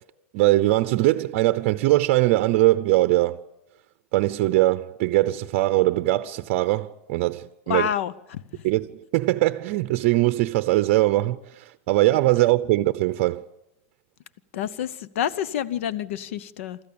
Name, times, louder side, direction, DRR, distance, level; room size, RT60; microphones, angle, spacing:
voice 1, 0.3-3.4 4.1-7.9 8.6-13.4, right 17 dB, 55° right, 0.7 m, -21 dB
voice 2, 7.7-8.7 14.5-16.8, left 9 dB, 80° left, 0.8 m, -28 dB
25.5 x 14.0 x 8.8 m
supercardioid pair, 150°, 7 cm